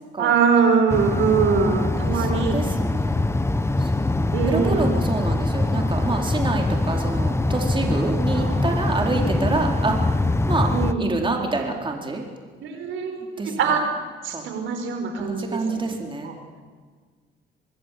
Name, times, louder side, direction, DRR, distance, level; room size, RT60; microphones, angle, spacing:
voice 1, 0.2-2.5 4.3-5.0 8.3-8.7 9.0-9.6 10.7-11.0 12.6-13.8 14.2-15.6 16.2-16.3, right 6 dB, 80° right, 5 dB, 4.9 m, -23 dB
sound 1, 0.9-10.9, left 2 dB, 15° left, 1.2 m, -23 dB
voice 2, 2.1-3.2 3.8-3.9 4.2-10.0 10.5-10.7 11.0-12.2 13.4-13.7 14.3-14.4 15.2-16.3, right 3 dB, 25° right, 1 dB, 4.3 m, -27 dB
26.0 x 20.0 x 8.6 m, 1.5 s
cardioid pair, 90°, 20 cm